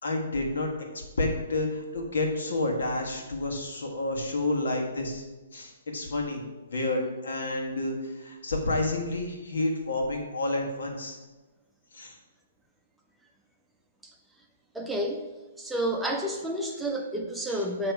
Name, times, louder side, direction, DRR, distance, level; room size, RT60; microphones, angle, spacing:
voice 1, 0.0-5.2 5.5-6.4 6.7-11.2 11.9-12.2 17.5-17.6, left 2 dB, 80° left, 1 dB, 1.5 m, -30 dB
voice 2, 14.7-15.2 15.6-17.9, right 1 dB, 5° right, 1 dB, 0.6 m, -30 dB
8.8 x 3.0 x 4.7 m, 1.2 s
hypercardioid pair, 155°, 0 cm